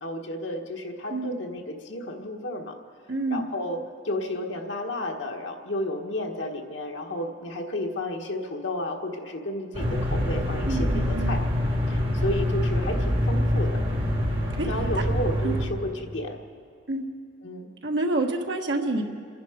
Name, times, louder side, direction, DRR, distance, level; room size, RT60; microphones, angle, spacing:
voice 1, 0.0-2.8 3.3-3.8 4.0-11.4 11.9-13.8 14.6-16.4 17.4-17.7, left 1 dB, 85° left, 2 dB, 1.4 m, -32 dB
voice 2, 3.1-3.5 10.7-11.3 14.6-14.7 14.9-15.0 15.4-15.6 16.9-17.1 17.8-19.0, right 2 dB, 75° right, 2 dB, 1.5 m, -27 dB
sound 1, 9.7-15.6, equal, 30° right, 2.1 m, -25 dB
27.0 x 10.5 x 5.1 m, 2.2 s
head